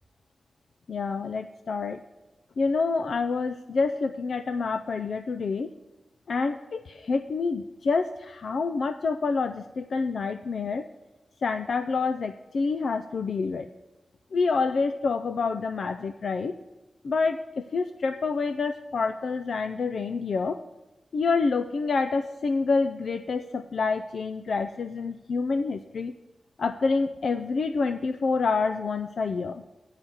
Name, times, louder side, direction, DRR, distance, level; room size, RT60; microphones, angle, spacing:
voice 1, 0.9-2.0 2.6-5.7 6.3-10.9 11.4-13.7 14.3-16.6 17.0-20.6 21.1-26.1 26.6-29.6, left 4 dB, 65° left, 9 dB, 0.3 m, -27 dB
9.2 x 5.6 x 8.0 m, 1.1 s
wide cardioid pair, 165°, 0 cm